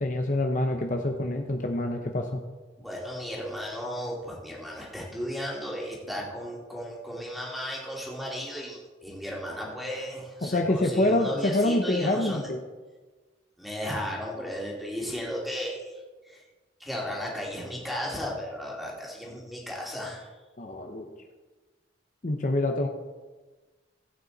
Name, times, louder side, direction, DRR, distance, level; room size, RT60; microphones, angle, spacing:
voice 1, 0.0-2.4 10.4-12.6 20.6-21.1 22.2-22.9, left 1 dB, 45° left, 3 dB, 0.8 m, -26 dB
voice 2, 2.8-12.5 13.6-15.9 16.2-16.4 16.8-20.3, equal, ahead, -3 dB, 2.5 m, -35 dB
16.0 x 8.7 x 4.0 m, 1.3 s
head